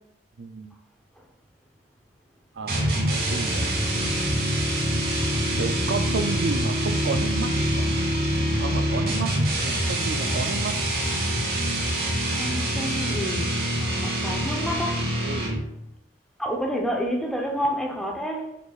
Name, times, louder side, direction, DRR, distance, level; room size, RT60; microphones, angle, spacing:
voice 1, 0.4-0.8 2.5-3.8 5.6-7.9 8.6-10.8 15.2-15.5, right 4 dB, 80° right, 0.5 m, -32 dB
sound 1, 2.7-15.8, right 1 dB, 55° right, 2.1 m, -25 dB
voice 2, 12.4-15.1 16.4-18.6, equal, ahead, 0.8 m, -29 dB
7.5 x 5.8 x 2.4 m
head